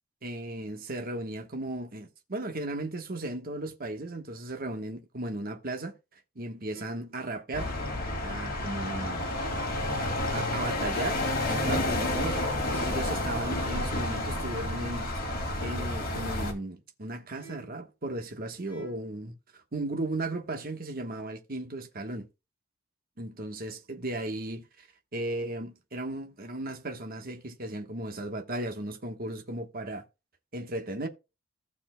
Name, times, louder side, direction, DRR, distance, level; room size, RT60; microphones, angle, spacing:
voice 1, 0.2-5.9 6.3-7.7 8.2-9.6 10.0-15.1 15.6-22.3 23.2-24.9 25.1-30.0 30.5-31.1, right 2 dB, 45° right, 1.2 m, -36 dB
sound 1, 6.7-7.2 8.0-8.5 9.3-9.8 10.7-11.2 12.0-12.5 13.3-13.8 14.7-15.2 16.0-16.5 17.3-17.9 18.6-19.1, right 9 dB, 10° right, 6.3 m, -51 dB
sound 2, 7.5-16.5, left 1 dB, 45° left, 2.2 m, -30 dB
15.0 x 7.0 x 2.2 m
head